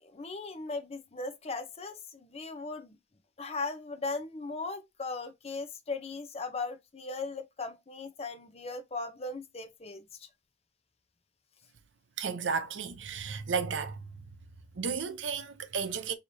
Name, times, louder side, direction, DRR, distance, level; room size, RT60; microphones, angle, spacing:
voice 1, 0.0-2.9 3.4-10.3, left 3 dB, 35° left, 0.6 m, -38 dB
voice 2, 12.2-14.1 14.8-16.1, right 5 dB, 90° right, 0.6 m, -33 dB
4.6 x 2.8 x 2.6 m
head